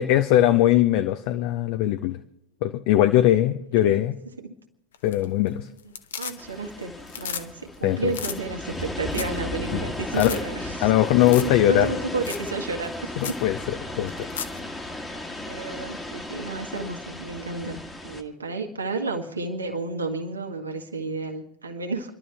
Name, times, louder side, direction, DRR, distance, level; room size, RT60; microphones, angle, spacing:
voice 1, 0.0-2.2 2.6-4.2 5.0-5.7 7.8-8.1 9.7-9.8 10.1-10.3 10.8-11.9 13.2-13.6 14.0-14.1, left 13 dB, 45° left, 9 dB, 0.6 m, -20 dB
sound 1, 4.9-5.5 5.8-6.7 7.0-7.5 7.7-7.8 8.1-8.4 8.8-8.9 9.1-9.4 9.7-9.8 10.1-10.4 11.2-11.6 11.8-11.9 12.2-12.5 12.8-12.9 13.2-13.4 14.1-14.6 16.8-16.9, left 8 dB, 60° left, 1.0 m, -34 dB
voice 2, 6.2-13.4 14.2-14.3 15.5-22.1, right 3 dB, 75° right, 3 dB, 1.9 m, -32 dB
sound 2, 6.4-18.2, left 1 dB, 10° left, 1.4 m, -35 dB
29.0 x 12.0 x 3.4 m, 0.81 s
figure-of-eight pair, 90°, 0 cm